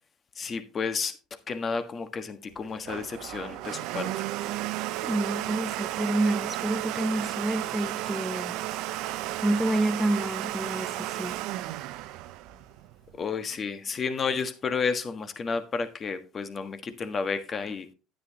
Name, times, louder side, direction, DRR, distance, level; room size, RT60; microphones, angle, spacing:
voice 1, 0.4-1.1 1.5-4.1 13.2-17.8, left 5 dB, 35° left, 1.4 m, -31 dB
Domestic sounds home sounds, 2.5-13.2, right 15 dB, 70° right, 0.6 m, -33 dB
voice 2, 5.0-8.6 9.4-11.4, right 1 dB, 5° right, 0.5 m, -28 dB
10.5 x 9.4 x 2.9 m
supercardioid pair, 90°, 0 cm